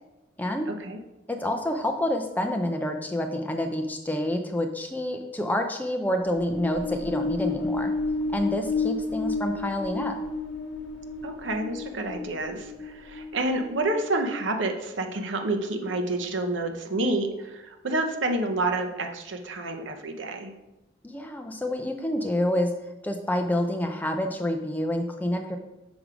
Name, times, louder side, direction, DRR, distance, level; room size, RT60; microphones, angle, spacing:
voice 1, 0.7-1.0 11.2-20.5, right 2 dB, 70° right, 4 dB, 0.8 m, -29 dB
voice 2, 1.3-7.9 8.3-10.2 21.0-22.7 23.0-25.6, left 1 dB, 10° left, 4 dB, 0.5 m, -28 dB
sound 1, 6.2-13.9, left 3 dB, 75° left, 1.0 m, -31 dB
6.2 x 4.8 x 5.0 m, 0.99 s
head